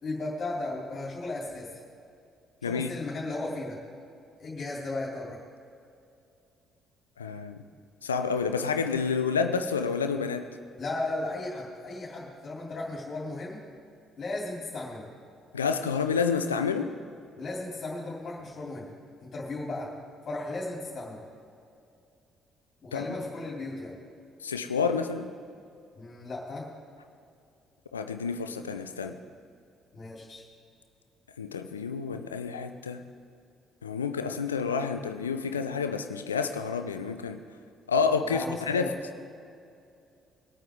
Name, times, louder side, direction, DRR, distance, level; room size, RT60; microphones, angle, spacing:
voice 1, 0.0-1.8 2.6-3.8 4.4-5.4 10.8-13.6 14.2-15.0 17.4-18.9 19.2-19.9 20.2-21.2 22.8-23.9 26.0-26.7 29.9-30.4 38.2-38.9, left 2 dB, 40° left, -5 dB, 3.1 m, -35 dB
voice 2, 2.6-2.9 7.2-7.6 8.0-10.5 15.5-16.9 22.9-23.1 24.4-25.3 27.9-29.2 31.4-33.0 33.8-37.4 37.9-38.9, left 5 dB, 80° left, 8 dB, 0.6 m, -29 dB
21.5 x 9.0 x 3.7 m, 2.5 s
figure-of-eight pair, 45°, 0 cm